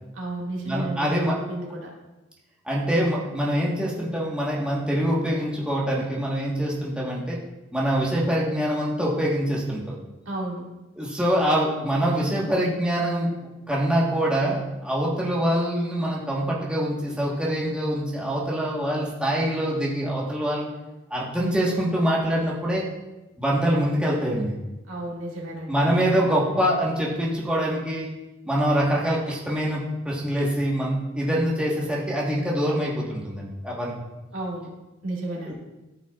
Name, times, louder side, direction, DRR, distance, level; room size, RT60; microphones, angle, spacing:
voice 1, 0.1-1.9 10.3-10.6 24.9-25.9 34.3-34.7 35.0-35.5, right 1 dB, 80° right, -3 dB, 2.0 m, -32 dB
voice 2, 0.6-1.4 2.6-7.4 7.7-10.0 11.0-13.3 13.7-20.7 21.1-22.8 23.4-24.6 25.7-28.1 28.5-33.9 35.4-35.5, equal, 5° right, -5 dB, 1.3 m, -24 dB
13.5 x 5.8 x 2.4 m, 1.0 s
head